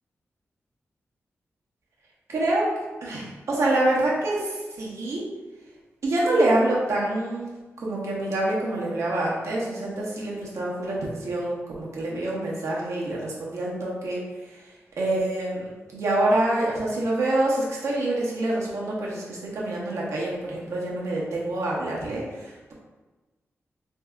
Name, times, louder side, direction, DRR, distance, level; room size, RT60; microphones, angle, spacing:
voice 1, 2.3-2.6 3.0-5.2 6.0-7.4 7.8-14.2 15.0-22.7, right 1 dB, 90° right, -4 dB, 0.9 m, -26 dB
4.5 x 2.7 x 2.3 m, 1.2 s
wide cardioid pair, 155°, 5 cm